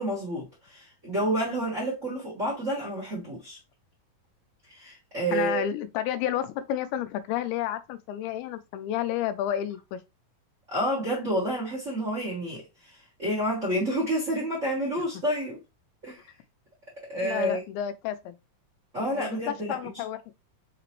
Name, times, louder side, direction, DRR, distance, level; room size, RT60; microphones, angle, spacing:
voice 1, 0.0-3.6 4.7-5.7 10.7-15.6 16.0-16.2 17.1-17.6 18.9-20.0, right 1 dB, 50° right, 0.9 m, -29 dB
voice 2, 5.3-10.0 17.2-18.4 19.0-20.2, left 11 dB, 85° left, 2.5 m, -31 dB
5.8 x 2.9 x 3.0 m
omnidirectional pair, 4.5 m